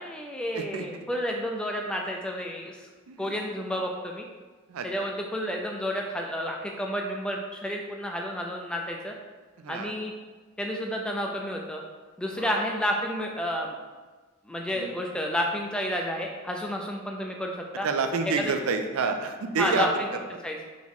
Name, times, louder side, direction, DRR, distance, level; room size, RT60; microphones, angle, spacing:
voice 1, 0.0-2.9 3.2-4.2 4.8-9.1 9.7-10.1 10.6-11.8 12.2-13.8 14.5-17.9 18.4-18.5 19.6-20.1 20.4-20.6, equal, 5° left, 0 dB, 0.3 m, -30 dB
voice 2, 0.5-0.9 3.1-3.5 4.7-5.1 9.6-9.9 12.4-12.6 14.7-14.9 17.8-19.9, right 4 dB, 85° right, 7 dB, 0.4 m, -29 dB
3.8 x 3.0 x 3.6 m, 1.3 s
head